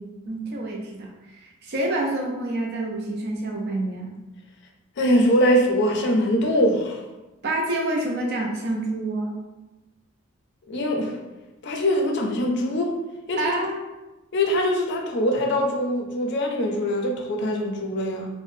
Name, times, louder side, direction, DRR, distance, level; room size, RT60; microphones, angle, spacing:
voice 1, 0.3-4.1 7.4-9.3 13.4-13.8, right 1 dB, 50° right, 0 dB, 0.5 m, -27 dB
voice 2, 5.0-7.0 10.7-11.2 11.6-13.0 13.3-13.5 14.3-18.3, equal, 55° left, 2 dB, 0.4 m, -22 dB
3.4 x 2.1 x 2.6 m, 1.1 s
head